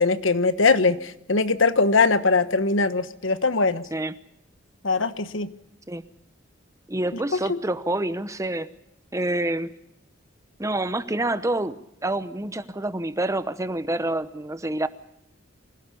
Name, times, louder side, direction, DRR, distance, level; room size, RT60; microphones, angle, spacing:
voice 1, 0.0-3.8 4.8-5.5 7.5-7.6, left 4 dB, 75° left, 12 dB, 1.2 m, -21 dB
voice 2, 6.9-8.7 9.1-9.7 10.6-14.9, right 1 dB, 15° right, 13 dB, 0.9 m, -27 dB
25.5 x 16.5 x 7.1 m, 0.82 s
head